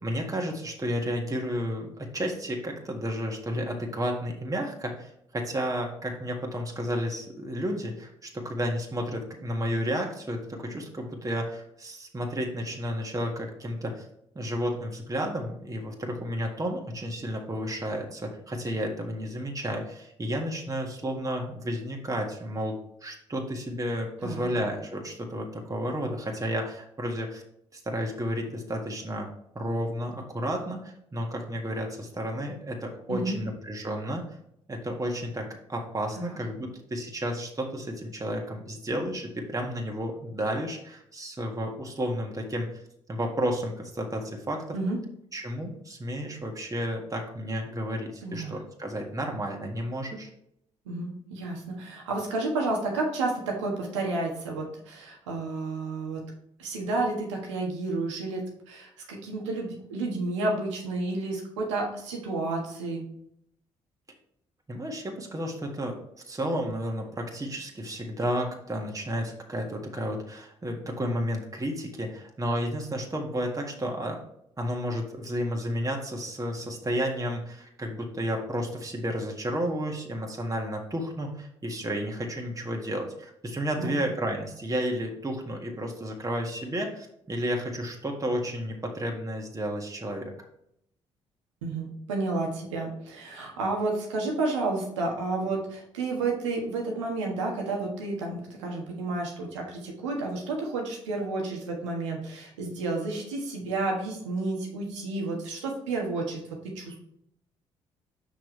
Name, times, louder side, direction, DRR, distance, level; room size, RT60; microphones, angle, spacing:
voice 1, 0.0-14.1 14.4-27.4 27.7-29.3 29.6-34.2 34.7-42.8 43.1-44.8 45.3-50.3 64.7-66.0 66.3-74.2 74.6-90.3, equal, 20° right, 1 dB, 1.7 m, -32 dB
voice 2, 48.2-48.6 50.8-56.2 56.6-63.1 83.8-84.0 91.6-107.0, right 3 dB, 85° right, 0 dB, 1.5 m, -31 dB
6.5 x 6.2 x 3.2 m, 0.74 s
hypercardioid pair, 45°, 15 cm